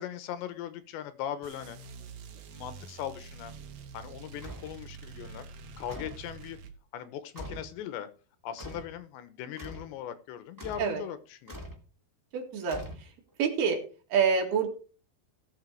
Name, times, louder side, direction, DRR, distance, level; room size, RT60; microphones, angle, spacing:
voice 1, 0.0-1.8 2.5-3.5 3.9-5.5 5.8-6.6 6.9-8.1 8.4-11.6, left 10 dB, 80° left, 12 dB, 3.2 m, -39 dB
sound 1, 1.4-6.7, right 5 dB, 80° right, 1.6 m, -46 dB
sound 2, 4.4-4.8 5.9-6.3 7.3-7.7 8.6-8.9 9.6-9.9 10.6-11.0 11.5-11.8 12.7-13.3, equal, 30° right, 0.3 m, -43 dB
voice 2, 12.3-13.1 13.4-13.8 14.1-14.7, right 6 dB, 65° right, 4 dB, 3.8 m, -27 dB
16.0 x 7.6 x 4.6 m, 0.36 s
omnidirectional pair, 5.2 m